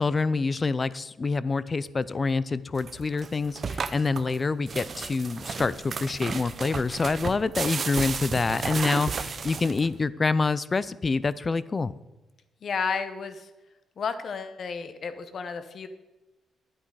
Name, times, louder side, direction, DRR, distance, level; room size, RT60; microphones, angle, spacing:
voice 1, 0.0-11.9, left 4 dB, 35° left, 18 dB, 0.5 m, -26 dB
sound 1, 2.8-10.0, right 5 dB, 45° right, 0.7 m, -33 dB
voice 2, 12.6-13.5 14.0-15.9, left 5 dB, 55° left, 10 dB, 1.0 m, -32 dB
10.5 x 8.8 x 4.9 m, 1.0 s
cardioid pair, 85°, 0 cm